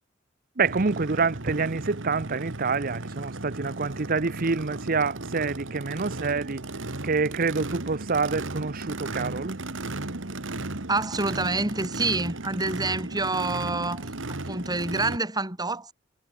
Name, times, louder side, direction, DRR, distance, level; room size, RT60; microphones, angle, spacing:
voice 1, 0.6-6.6 7.0-9.6, right 4 dB, 50° right, 0.8 m, -27 dB
Race car auto racing / Idling / Accelerating revving vroom, 0.7-15.2, right 2 dB, 75° right, 2.0 m, -35 dB
voice 2, 10.9-15.9, right 3 dB, 20° right, 4.9 m, -28 dB
head